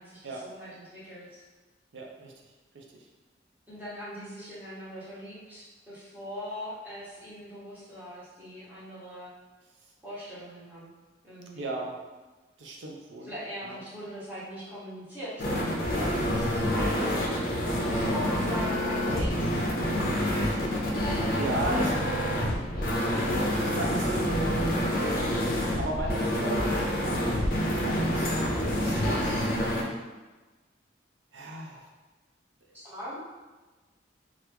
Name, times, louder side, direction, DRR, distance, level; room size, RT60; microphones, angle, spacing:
voice 1, 0.0-1.4 3.7-9.3 10.0-10.9 11.2-11.7 13.2-17.2 17.8-19.5 20.2-21.0 32.7-33.2, equal, 10° right, -11 dB, 1.0 m, -41 dB
voice 2, 1.9-2.3 2.7-3.1 11.5-12.0 12.6-13.3 13.6-13.8 17.9-18.2 20.5-20.6 21.3-22.3 23.1-24.4 25.8-26.7 27.2-29.5 31.3-31.9 32.7-32.8, right 2 dB, 85° right, 0 dB, 0.6 m, -37 dB
sound 1, 15.4-29.8, equal, 50° left, 0.5 m, -27 dB
3.0 x 2.4 x 3.3 m, 1.2 s
head